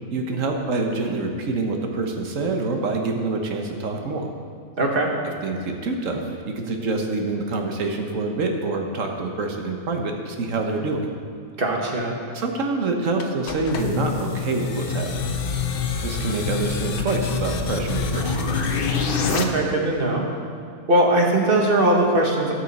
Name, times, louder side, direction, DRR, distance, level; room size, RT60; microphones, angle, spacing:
voice 1, 0.1-4.3 5.4-11.0 12.3-15.3 16.0-18.6, right 3 dB, 60° right, 3 dB, 1.4 m, -26 dB
voice 2, 4.8-5.1 11.6-12.2 19.3-20.2 20.9-22.5, right 1 dB, 40° right, 0 dB, 1.5 m, -20 dB
sound 1, 13.2-19.4, left 5 dB, 50° left, 0.7 m, -26 dB
16.5 x 6.4 x 4.1 m, 2.4 s
omnidirectional pair, 1.6 m